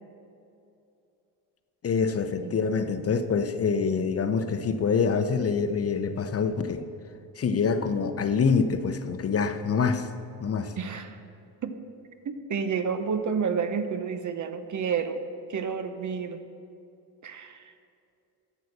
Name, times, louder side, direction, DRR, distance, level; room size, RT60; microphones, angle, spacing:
voice 1, 1.8-6.8 7.4-10.1 10.4-10.7, left 5 dB, 35° left, 9 dB, 0.8 m, -25 dB
voice 2, 10.8-11.2 11.6-11.7 12.2-15.2 15.5-16.4 17.2-17.7, right 6 dB, 45° right, 9 dB, 1.0 m, -30 dB
10.5 x 8.1 x 6.7 m, 2.7 s
supercardioid pair, 80°, 40 cm